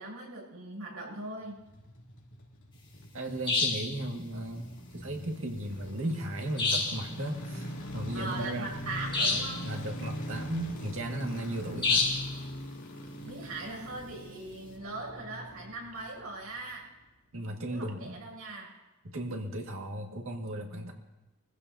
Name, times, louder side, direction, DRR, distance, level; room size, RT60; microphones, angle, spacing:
voice 1, 0.0-1.6 8.1-9.7 13.2-16.9 17.7-18.8, right 2 dB, 80° right, -2 dB, 6.9 m, -40 dB
sound 1, 1.4-16.7 16.9-17.0, equal, 60° left, 3.0 m, -42 dB
voice 2, 3.1-4.7 4.9-8.8 9.5-12.1 17.3-18.2 19.0-20.9, right 1 dB, 65° right, 1 dB, 2.0 m, -36 dB
sound 2, 3.5-3.9 6.6-7.1 9.1-9.6 11.8-12.3, left 3 dB, 20° left, 1.8 m, -27 dB
23.0 x 15.5 x 2.8 m, 1.0 s
head